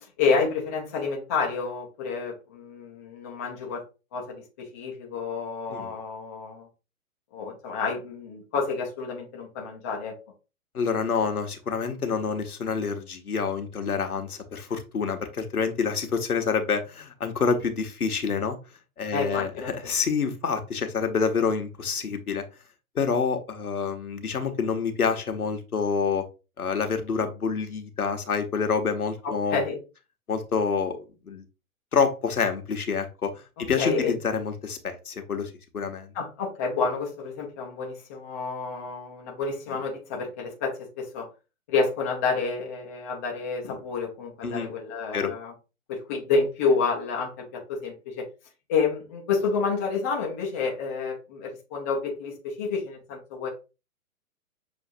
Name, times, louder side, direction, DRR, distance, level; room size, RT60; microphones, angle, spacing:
voice 1, 0.0-3.8 4.1-6.7 7.3-10.1 19.1-19.7 29.2-29.8 33.6-34.1 36.1-41.3 41.7-45.5 45.9-48.2 48.7-53.5, left 4 dB, 10° left, -1 dB, 0.4 m, -29 dB
voice 2, 10.7-18.6 19.0-22.4 22.9-26.3 26.6-29.6 30.3-31.0 31.2-31.4 31.9-36.1 44.4-44.7 45.1-45.3, left 5 dB, 85° left, 6 dB, 1.0 m, -27 dB
6.2 x 2.6 x 2.5 m, 0.30 s
figure-of-eight pair, 125°, 43 cm